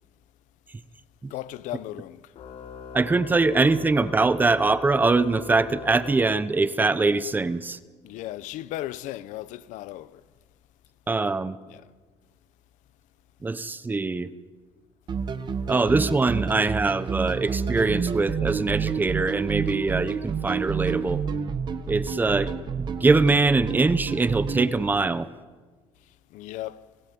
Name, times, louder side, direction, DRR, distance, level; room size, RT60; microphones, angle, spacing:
voice 1, 1.3-2.2 8.0-10.2 11.7-11.8 26.3-26.9, left 15 dB, 80° left, 0.9 m, -36 dB
Organ, 2.3-6.9, left 6 dB, 55° left, 5.0 m, -41 dB
voice 2, 2.9-7.8 11.1-11.6 13.4-14.3 15.7-21.2 21.9-25.3, right 3 dB, 15° right, 0.8 m, -23 dB
sound 1, 15.1-24.7, right 6 dB, 35° right, 1.5 m, -29 dB
28.0 x 17.5 x 9.4 m
cardioid pair, 160°, 13 cm